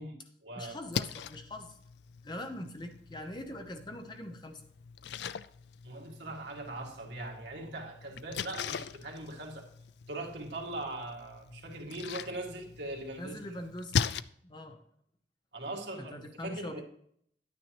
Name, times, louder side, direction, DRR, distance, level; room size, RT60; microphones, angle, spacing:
voice 1, 0.0-0.8 5.8-9.7 10.1-13.4 15.5-16.8, right 2 dB, 80° right, 0 dB, 2.0 m, -41 dB
voice 2, 0.6-1.8 2.2-4.6 13.2-14.1 14.4-14.8 16.0-16.8, left 1 dB, 25° left, 6 dB, 0.9 m, -42 dB
Splash splatter, 0.7-14.2, left 7 dB, 75° left, 0.4 m, -40 dB
10.5 x 9.5 x 3.0 m, 0.67 s
head